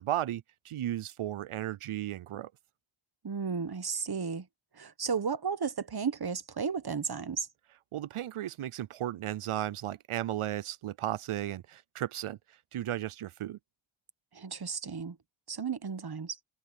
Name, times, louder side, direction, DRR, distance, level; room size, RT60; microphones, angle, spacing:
voice 1, 0.0-2.5 7.9-12.4 12.7-13.6, right 12 dB, 90° right, 0.6 m, -35 dB
voice 2, 3.2-4.5 4.8-7.5 14.3-15.2 15.5-16.4, right 6 dB, 50° right, 1.1 m, -33 dB
wide cardioid pair, 80°, 49 cm